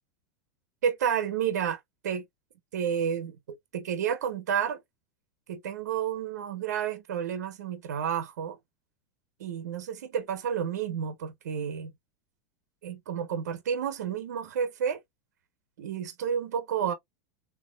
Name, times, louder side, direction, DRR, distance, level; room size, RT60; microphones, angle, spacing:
voice 1, 0.8-2.2 2.7-4.8 5.5-8.6 9.4-11.9 12.8-15.0 15.8-16.9, right 8 dB, 90° right, 0.9 m, -30 dB
3.7 x 2.9 x 2.3 m
supercardioid pair, 125°, 9 cm